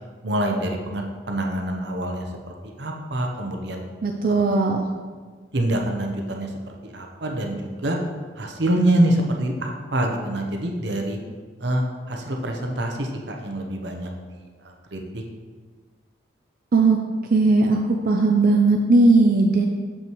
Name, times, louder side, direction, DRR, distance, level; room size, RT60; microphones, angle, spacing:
voice 1, 0.2-3.8 5.5-6.5 6.8-8.0 8.4-11.2 11.6-14.5 14.9-15.2, right 1 dB, 65° right, 2 dB, 0.8 m, -25 dB
voice 2, 4.0-4.9 16.7-17.0 17.3-17.8 18.0-19.7, right 3 dB, 50° right, 2 dB, 0.4 m, -17 dB
7.0 x 5.6 x 3.1 m, 1.5 s
head